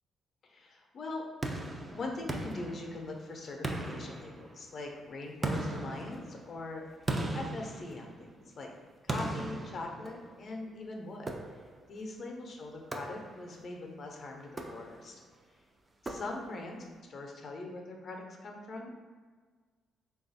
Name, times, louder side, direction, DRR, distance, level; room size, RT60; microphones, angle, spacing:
voice 1, 0.4-1.3 1.6-8.7 9.0-11.3 11.5-11.6 11.9-15.2 16.0-19.0, left 2 dB, 50° left, 2 dB, 0.6 m, -42 dB
sound 1, 1.4-3.2 3.6-4.8 5.4-8.5 9.1-10.5 11.3-11.9 12.9-13.6 14.4-15.2 16.1-16.7, right 2 dB, 25° right, 0.4 m, -38 dB
3.3 x 2.3 x 4.0 m, 1.5 s
cardioid pair, 90°, 0 cm